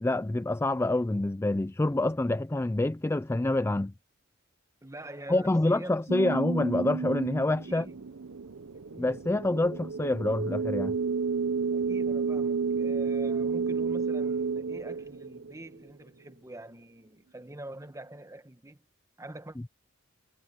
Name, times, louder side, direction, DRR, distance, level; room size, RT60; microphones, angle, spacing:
voice 1, 0.0-3.9 5.3-7.9 9.0-10.9, left 2 dB, 10° left, 0.4 m, -27 dB
voice 2, 4.8-6.4 7.7-8.0 8.7-9.1 11.7-18.8 19.2-19.6, right 1 dB, 15° right, 1.2 m, -45 dB
sound 1, 6.1-15.9, right 5 dB, 90° right, 0.9 m, -31 dB
head